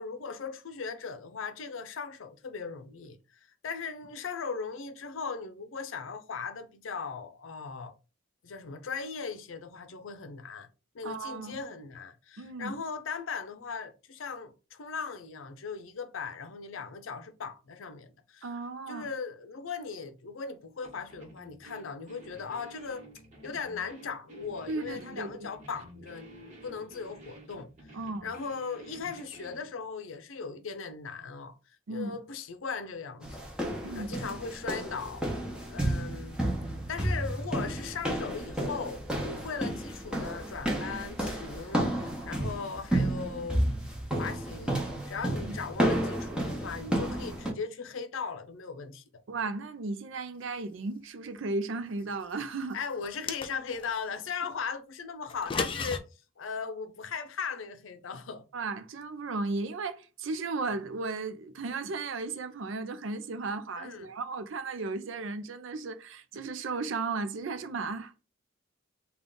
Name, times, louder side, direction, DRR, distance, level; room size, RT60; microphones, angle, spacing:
voice 1, 0.0-3.2 3.6-7.9 8.4-10.7 10.9-18.5 18.9-23.0 23.4-27.7 28.2-31.6 31.9-33.5 33.9-35.2 35.7-36.4 36.9-43.7 44.1-49.0 52.7-56.0 56.4-58.4 63.8-64.1, left 5 dB, 80° left, 0.6 m, -38 dB
voice 2, 11.0-11.6 12.4-12.8 18.4-19.1 24.7-25.5 27.9-28.3 31.9-32.2 33.8-34.2 45.4-45.6 49.3-52.8 58.5-68.2, right 3 dB, 70° right, 0.5 m, -35 dB
sound 1, 20.8-29.7, right 1 dB, 40° right, 1.3 m, -51 dB
sound 2, 33.2-47.5, right 1 dB, 5° right, 0.8 m, -32 dB
sound 3, 53.0-53.9 55.3-56.0, left 5 dB, 25° left, 0.3 m, -33 dB
3.6 x 2.4 x 3.7 m
head